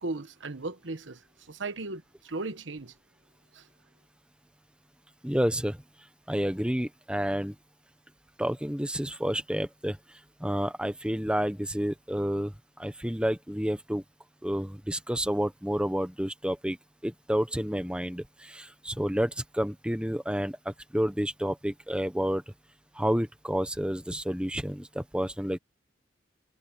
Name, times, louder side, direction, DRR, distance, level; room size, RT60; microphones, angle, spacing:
voice 1, 0.0-2.9 3.5-3.7, right 2 dB, 75° right, 1.2 m, -37 dB
voice 2, 5.2-5.8 6.3-7.5 8.4-10.0 10.4-12.5 12.8-14.0 14.4-16.8 17.0-22.4 22.9-25.6, equal, 5° right, 1.1 m, -30 dB
head